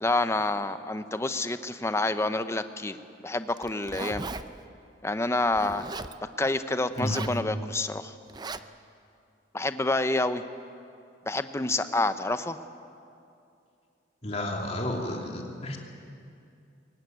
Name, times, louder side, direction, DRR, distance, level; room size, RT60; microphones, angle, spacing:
voice 1, 0.0-3.0 3.2-4.3 5.0-5.8 6.4-8.1 9.5-10.4 11.3-12.6, left 2 dB, 15° left, 10 dB, 0.8 m, -28 dB
Zipper (clothing), 3.5-4.4 5.5-6.1 6.9-7.4 8.3-8.6, right 3 dB, 20° right, 0.5 m, -37 dB
voice 2, 14.2-15.8, left 1 dB, 35° left, 1 dB, 2.8 m, -31 dB
22.5 x 18.5 x 9.3 m, 2.6 s
head